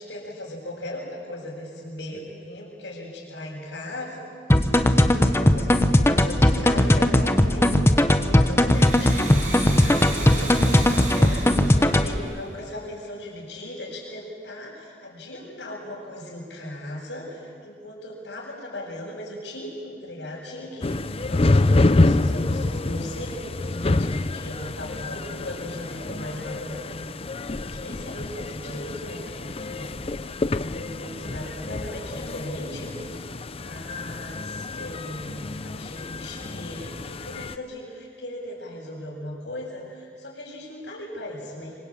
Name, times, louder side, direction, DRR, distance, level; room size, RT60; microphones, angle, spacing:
voice 1, 0.0-4.2 4.5-27.1 27.4-29.9 30.4-41.8, left 1 dB, 90° left, -8 dB, 7.1 m, -38 dB
sound 1, 4.5-12.2, left 1 dB, 15° left, 1.1 m, -19 dB
Domestic sounds home sounds, 8.6-13.1, right 2 dB, 45° right, 5.0 m, -35 dB
sound 2, 20.8-37.6, left 2 dB, 35° left, 0.6 m, -27 dB
26.5 x 25.0 x 8.7 m, 2.2 s
head